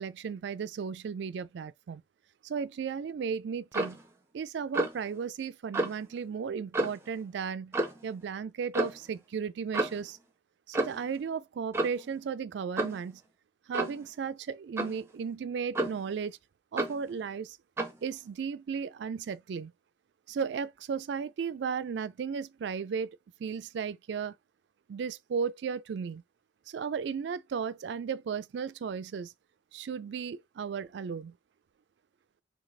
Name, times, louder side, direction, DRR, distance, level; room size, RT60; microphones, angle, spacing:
voice 1, 0.0-2.0 2.4-4.0 4.3-7.7 8.0-10.2 10.7-13.2 13.7-16.4 16.7-17.6 18.0-19.7 20.3-23.1 23.4-24.3 24.9-26.2 26.7-29.3 29.7-31.3, right 6 dB, 65° right, 0.3 m, -35 dB
Clock, 3.7-4.0 4.7-5.0 5.7-6.0 6.7-7.1 7.7-8.0 8.7-9.0 9.7-10.1 10.7-11.1 11.7-12.1 12.8-13.0 13.7-14.0 14.8-15.0 15.7-16.1 16.8-17.0 17.8-18.0, right 2 dB, 15° right, 0.5 m, -31 dB
3.2 x 3.1 x 4.0 m
head